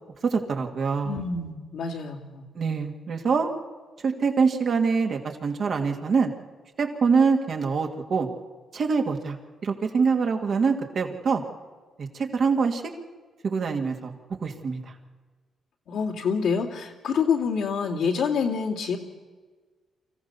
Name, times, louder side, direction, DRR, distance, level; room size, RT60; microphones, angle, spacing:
voice 1, 0.2-1.2 2.5-3.5 4.0-6.3 6.8-8.3 8.7-9.4 9.6-11.4 12.0-12.8 13.4-14.1 14.4-14.8, right 5 dB, 55° right, 3 dB, 2.5 m, -24 dB
voice 2, 1.0-2.5 15.9-19.0, left 6 dB, 80° left, -3 dB, 2.5 m, -27 dB
24.5 x 15.0 x 7.2 m, 1.4 s
cardioid pair, 75°, 0 cm